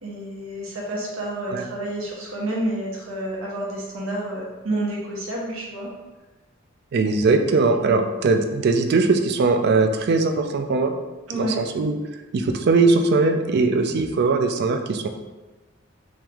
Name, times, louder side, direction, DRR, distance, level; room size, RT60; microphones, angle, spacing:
voice 1, 0.0-5.9 7.4-7.5 7.8-8.1 11.3-11.6, right 1 dB, 85° right, -4 dB, 1.0 m, -29 dB
voice 2, 6.9-11.0 11.3-12.0 12.3-15.1, right 3 dB, 55° right, 6 dB, 0.4 m, -20 dB
3.1 x 3.0 x 3.5 m, 1.2 s
head